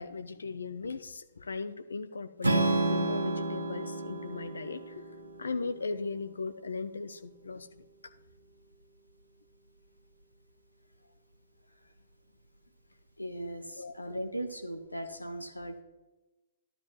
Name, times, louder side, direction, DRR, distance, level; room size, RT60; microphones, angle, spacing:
voice 1, 0.0-5.0 5.4-8.1 13.8-13.9, left 4 dB, 70° left, 10 dB, 0.7 m, -38 dB
Strum, 2.4-6.6, right 2 dB, 75° right, 1.4 m, -31 dB
voice 2, 13.2-15.8, right 1 dB, 85° left, 6 dB, 1.3 m, -38 dB
12.5 x 12.0 x 3.0 m, 1.1 s
figure-of-eight pair, 120°, 0 cm